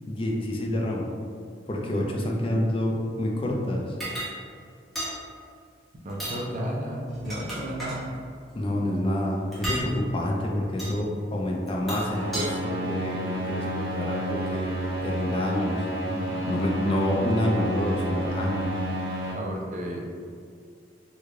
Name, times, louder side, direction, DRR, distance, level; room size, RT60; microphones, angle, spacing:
voice 1, 0.1-1.0 1.7-3.9 8.6-15.8 16.5-18.7, left 1 dB, 30° left, -1 dB, 0.4 m, -28 dB
sound 1, 4.0-4.3 5.0-5.2 6.1-6.4 7.1-8.0 9.5-9.9 10.8-11.0 11.7-12.5, right 1 dB, ahead, 0.8 m, -33 dB
voice 2, 6.0-8.1 16.1-16.6 19.3-20.0, equal, 40° right, -1 dB, 0.5 m, -33 dB
sound 2, 12.0-19.3, right 1 dB, 85° right, 1.2 m, -30 dB
3.1 x 2.3 x 3.6 m, 2.2 s
head